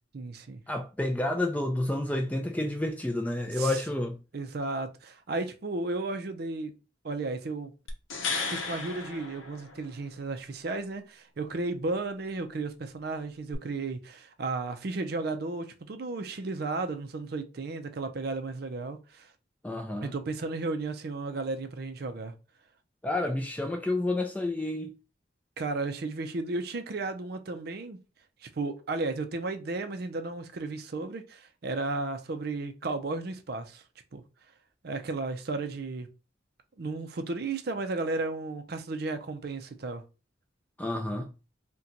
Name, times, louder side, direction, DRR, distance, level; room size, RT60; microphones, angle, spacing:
voice 1, 0.1-0.6 3.5-3.8 4.3-6.7 7.0-7.7 8.5-19.3 20.0-22.3 25.6-28.0 28.4-33.8 34.1-34.2 34.8-36.1 36.8-40.0, right 3 dB, 50° right, 0.4 m, -34 dB
voice 2, 0.7-4.2 19.6-20.1 23.0-24.9 40.8-41.3, left 1 dB, 10° left, 0.4 m, -30 dB
sound 1, 7.9-10.2 13.5-13.6, left 4 dB, 80° left, 0.7 m, -35 dB
2.8 x 2.2 x 3.7 m
head